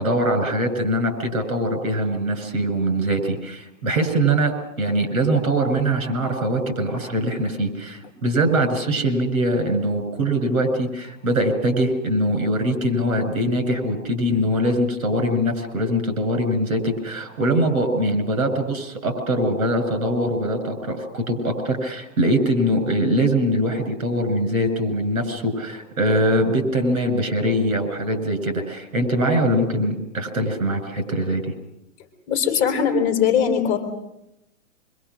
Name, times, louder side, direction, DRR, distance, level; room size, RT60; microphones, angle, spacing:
voice 1, 0.0-31.5, right 1 dB, 75° right, 6 dB, 7.1 m, -22 dB
voice 2, 32.3-33.8, left 7 dB, 20° left, 4 dB, 3.8 m, -20 dB
25.5 x 24.5 x 6.3 m, 0.86 s
hypercardioid pair, 160°, 41 cm